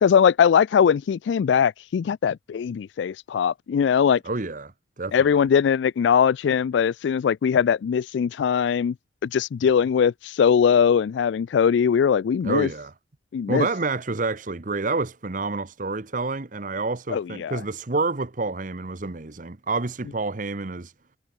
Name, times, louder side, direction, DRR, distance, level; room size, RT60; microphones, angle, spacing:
voice 1, 0.0-4.2 5.1-8.9 9.2-12.7 13.3-13.7 17.1-17.6, left 7 dB, 75° left, 0.3 m, -21 dB
voice 2, 4.2-5.4 12.4-12.9 13.5-20.9, right 3 dB, 45° right, 1.0 m, -28 dB
head